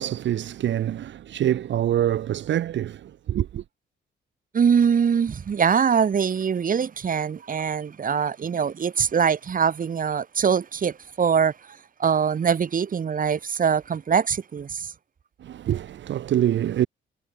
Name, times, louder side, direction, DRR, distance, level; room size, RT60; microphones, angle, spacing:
voice 1, 0.0-3.6 15.4-16.9, right 11 dB, 65° right, 1.6 m, -25 dB
voice 2, 4.5-14.9, right 7 dB, 45° right, 2.2 m, -23 dB
cardioid pair, 90°, 20 cm